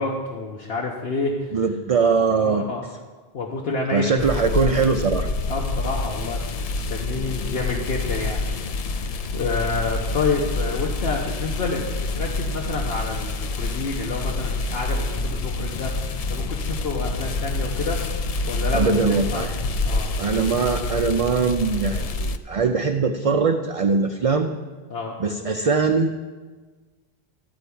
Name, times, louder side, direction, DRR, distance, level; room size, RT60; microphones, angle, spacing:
voice 1, 0.0-1.5 2.4-2.8 3.3-4.7 5.5-11.9 12.1-18.0 18.5-19.5 19.8-20.2 24.9-25.1, left 3 dB, 70° left, -2 dB, 1.2 m, -29 dB
voice 2, 1.5-2.6 3.9-5.3 18.7-19.5 20.2-24.5 25.2-26.2, right 4 dB, 45° right, 5 dB, 0.5 m, -21 dB
sound 1, 4.2-22.4, left 2 dB, 50° left, 0.5 m, -27 dB
13.0 x 4.5 x 8.5 m, 1.4 s
omnidirectional pair, 1.1 m